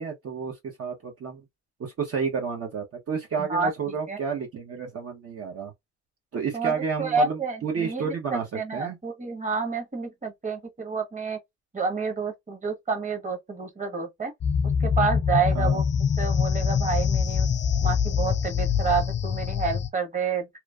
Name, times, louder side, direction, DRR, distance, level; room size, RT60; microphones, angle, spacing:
voice 1, 0.0-1.4 1.8-5.7 6.3-9.0 15.5-15.8, right 6 dB, 50° right, 1.0 m, -31 dB
voice 2, 3.4-4.2 6.5-11.4 11.7-14.3 14.8-15.8 16.2-17.5 17.8-20.5, right 4 dB, 25° right, 1.2 m, -29 dB
sound 1, 14.4-19.9, left 7 dB, 35° left, 0.6 m, -24 dB
3.1 x 2.1 x 2.4 m
cardioid pair, 90°, 30 cm